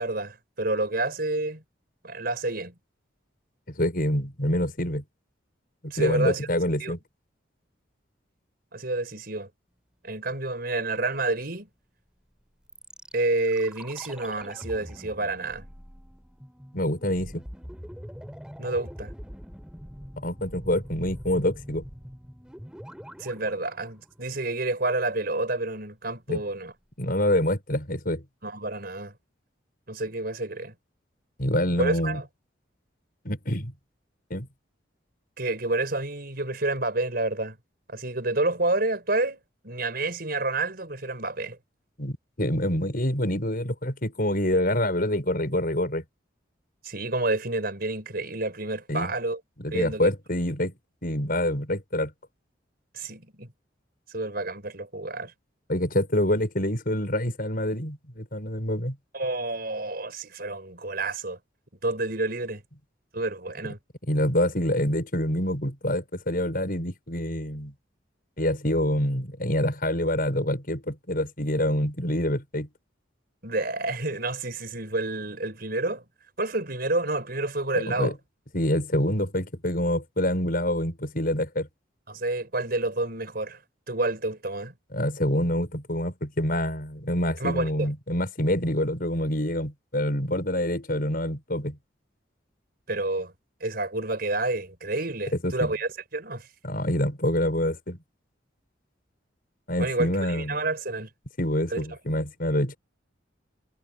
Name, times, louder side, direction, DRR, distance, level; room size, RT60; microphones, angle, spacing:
voice 1, 0.0-1.6 2.0-2.7 5.9-6.5 6.8-6.9 8.7-9.5 10.0-11.7 13.1-15.6 18.6-19.1 23.2-26.7 28.4-29.1 29.9-30.7 31.8-32.2 35.4-37.6 37.9-41.6 46.8-49.4 49.7-50.1 52.9-53.5 54.1-55.3 59.1-61.4 61.8-62.6 63.1-63.8 73.4-76.0 76.4-78.1 82.1-83.6 83.9-84.7 87.4-87.9 92.9-93.3 93.6-96.5 99.8-101.1 101.7-101.9, right 2 dB, 55° right, 5.3 m, -29 dB
voice 2, 3.7-5.0 5.8-7.0 16.7-17.4 20.2-21.8 26.3-26.4 27.0-28.2 31.4-32.2 33.2-33.7 34.3-34.5 42.0-46.0 48.9-49.1 49.6-50.7 51.0-52.1 55.7-59.0 64.1-67.7 68.4-72.7 77.7-78.1 78.5-81.7 84.9-91.8 95.4-95.7 96.6-98.0 99.7-100.6 101.4-102.8, left 1 dB, 50° left, 6.4 m, -26 dB
sound 1, 12.7-24.7 24.9-25.0, equal, 5° right, 4.0 m, -43 dB
head